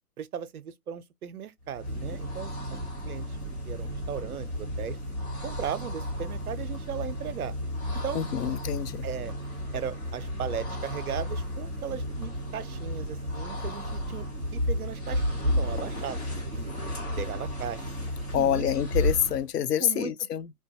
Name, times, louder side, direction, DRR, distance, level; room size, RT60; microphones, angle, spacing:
voice 1, 0.2-2.8 3.0-3.3 3.7-5.0 5.4-7.5 8.0-8.2 9.0-9.3 9.7-16.7 17.2-17.9 18.3-18.7 19.8-20.1, right 9 dB, 65° right, 0.6 m, -37 dB
sound 1, 1.7-19.5, equal, 25° left, 1.1 m, -33 dB
voice 2, 8.1-9.1 18.3-20.5, left 10 dB, 80° left, 0.5 m, -27 dB
2.9 x 2.2 x 2.8 m
hypercardioid pair, 160°, 47 cm